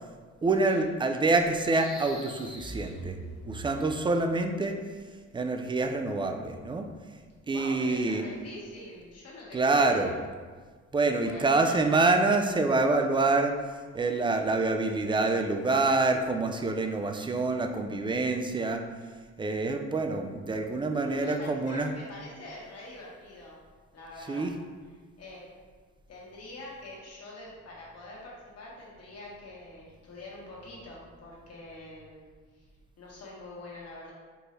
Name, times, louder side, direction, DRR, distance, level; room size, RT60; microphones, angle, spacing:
voice 1, 0.4-3.2 3.4-4.8 5.3-6.9 7.5-8.2 9.5-10.1 10.9-13.6 13.9-18.8 19.4-21.9 24.3-24.5, right 3 dB, 15° right, 5 dB, 0.3 m, -26 dB
sound 1, 1.4-4.2, right 1 dB, ahead, 1.1 m, -43 dB
voice 2, 7.5-10.3 11.2-11.8 21.0-23.6 23.9-24.5 24.9-25.5 26.1-32.3 32.5-32.6 33.0-34.1, left 2 dB, 55° left, -5 dB, 1.3 m, -45 dB
4.4 x 2.7 x 3.2 m, 1.5 s
cardioid pair, 90°, 30 cm